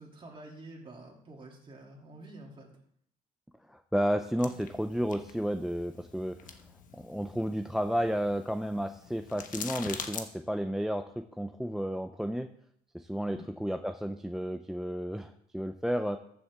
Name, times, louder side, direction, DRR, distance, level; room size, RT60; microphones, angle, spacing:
voice 1, 0.0-2.7 13.3-13.5, right 2 dB, 30° right, -1 dB, 2.9 m, -48 dB
voice 2, 3.7-6.4 6.9-12.5 12.9-16.2, equal, ahead, 8 dB, 0.4 m, -32 dB
sound 1, 4.4-10.2, left 7 dB, 50° left, 1.1 m, -44 dB
13.5 x 7.3 x 3.6 m, 0.68 s
cardioid pair, 110°, 17 cm